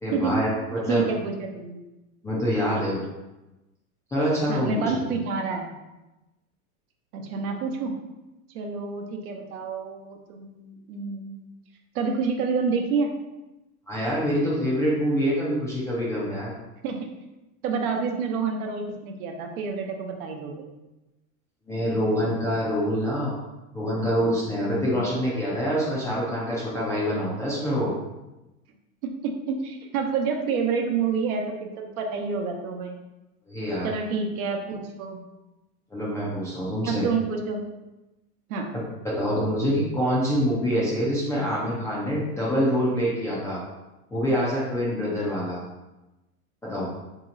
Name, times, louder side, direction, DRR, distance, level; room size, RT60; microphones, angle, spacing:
voice 1, 0.0-1.0 2.2-3.0 4.1-4.8 13.9-16.5 21.7-23.4 23.7-27.9 33.5-33.9 35.9-37.1 39.0-43.6 44.1-45.6 46.6-46.9, equal, 5° left, -8 dB, 0.3 m, -25 dB
voice 2, 0.9-1.8 2.7-2.8 4.5-5.7 7.1-7.9 8.5-11.5 11.9-13.1 16.8-17.0 17.6-20.7 24.7-25.0 29.0-33.0 33.8-35.2 36.8-37.6 38.5-38.7, right 5 dB, 70° right, 2 dB, 0.8 m, -28 dB
3.0 x 3.0 x 3.8 m, 1.0 s
supercardioid pair, 135°, 44 cm